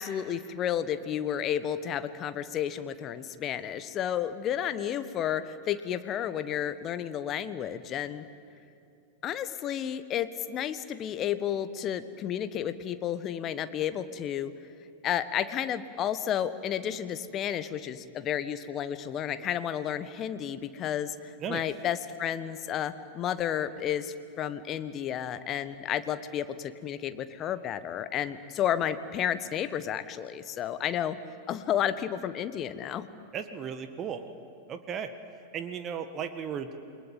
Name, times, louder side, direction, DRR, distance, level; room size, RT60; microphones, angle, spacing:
voice 1, 0.0-8.2 9.2-14.5 15.0-31.2 31.5-33.1, left 10 dB, 35° left, 12 dB, 1.4 m, -32 dB
voice 2, 33.3-34.3 34.7-35.1 35.5-36.8, right 7 dB, 30° right, 9 dB, 1.6 m, -35 dB
28.5 x 22.0 x 9.1 m, 2.7 s
figure-of-eight pair, 90°, 0 cm